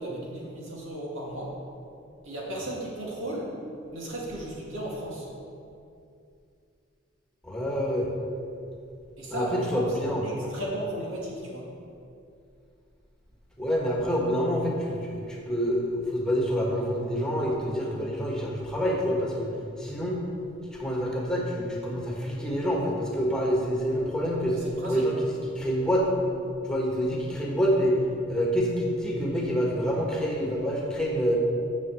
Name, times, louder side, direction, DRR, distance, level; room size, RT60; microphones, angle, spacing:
voice 1, 0.0-1.5 2.2-3.5 3.9-5.3 9.2-9.8 10.2-11.7 24.6-25.1, right 1 dB, 85° right, -3 dB, 2.5 m, -35 dB
voice 2, 7.4-8.1 9.3-10.5 13.6-19.5 19.8-20.2 20.8-24.6 24.9-26.1 26.6-28.0 28.3-31.4, equal, 5° left, -3 dB, 1.4 m, -27 dB
7.6 x 6.5 x 7.6 m, 2.5 s
head